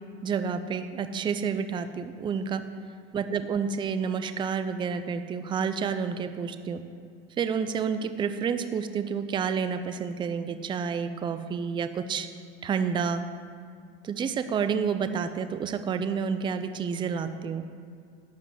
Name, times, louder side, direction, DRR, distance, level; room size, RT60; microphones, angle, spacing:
voice 1, 0.2-2.6 3.1-6.8 7.4-12.3 12.6-13.2 14.0-17.6, right 6 dB, 15° right, 10 dB, 0.5 m, -29 dB
12.0 x 5.1 x 7.7 m, 2.3 s
supercardioid pair, 120°, 32 cm